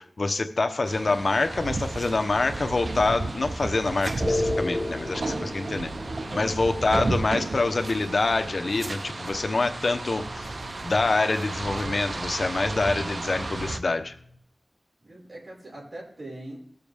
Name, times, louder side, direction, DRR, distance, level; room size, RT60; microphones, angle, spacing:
voice 1, 0.0-5.9 6.3-10.6 10.8-14.1, left 3 dB, 70° left, 7 dB, 0.8 m, -26 dB
sound 1, 0.9-13.8, right 2 dB, 65° right, 0.6 m, -33 dB
sound 2, 4.2-14.4, left 1 dB, 25° left, 1.0 m, -36 dB
voice 2, 6.2-7.3 15.0-16.6, right 1 dB, 50° right, -3 dB, 5.2 m, -43 dB
19.0 x 6.9 x 3.5 m, 0.64 s
wide cardioid pair, 75°, 0 cm